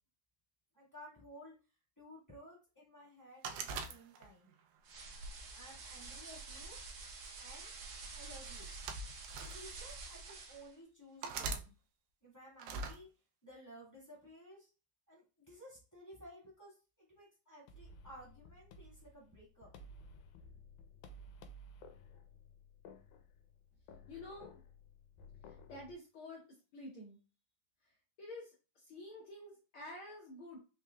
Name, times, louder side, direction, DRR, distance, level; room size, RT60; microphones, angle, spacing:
voice 1, 0.7-1.5 2.0-4.5 5.5-6.8 7.3-7.7 8.1-8.7 9.1-11.7 12.2-13.1 13.4-14.7 15.1-19.7, equal, 10° left, -6 dB, 1.0 m, -56 dB
sound 1, 3.4-4.5 5.1-6.3 7.3-7.5 8.5-9.6 10.3-10.4 11.2-11.7 12.6-13.0, right 4 dB, 80° right, 1.9 m, -42 dB
sound 2, 4.8-10.7, right 3 dB, 65° right, 1.3 m, -49 dB
sound 3, 17.7-25.9, left 2 dB, 85° left, 2.0 m, -56 dB
voice 2, 24.1-24.6 25.4-26.4 26.7-27.2 27.8-30.6, left 1 dB, 65° left, -4 dB, 1.3 m, -50 dB
5.2 x 3.1 x 2.2 m, 0.33 s
omnidirectional pair, 3.4 m